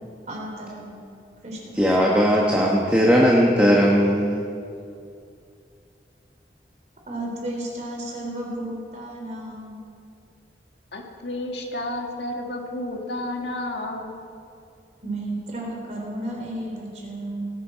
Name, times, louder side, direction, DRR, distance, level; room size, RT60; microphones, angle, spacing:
voice 1, 0.3-1.0 1.4-1.7 7.1-9.8 15.0-17.5, right 1 dB, 40° right, -2 dB, 3.3 m, -33 dB
voice 2, 1.7-4.5, equal, 10° right, -2 dB, 1.1 m, -18 dB
voice 3, 10.9-14.2, left 1 dB, 80° left, 2 dB, 1.8 m, -31 dB
18.5 x 11.5 x 4.5 m, 2.5 s
head